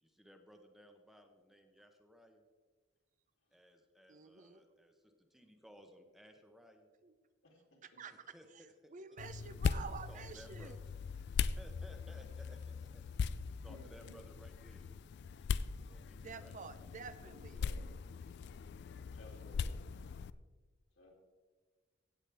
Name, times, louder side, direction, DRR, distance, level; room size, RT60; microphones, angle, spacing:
voice 1, 0.0-2.4 3.5-6.9 8.1-8.9 10.1-10.8 11.4-13.0 13.6-14.9 15.7-16.6 18.2-18.3, equal, ahead, 5 dB, 0.8 m, -59 dB
voice 2, 4.1-4.6 7.0-7.2 7.8-8.7 8.9-10.8 16.2-17.7, right 5 dB, 40° right, 12 dB, 0.5 m, -49 dB
sound 1, 9.2-20.3, left 6 dB, 60° left, 0.3 m, -40 dB
voice 3, 13.7-14.4 17.6-17.8 19.1-19.7 21.0-21.1, equal, 75° left, -1 dB, 2.9 m, -58 dB
16.5 x 8.1 x 3.4 m, 1.4 s
head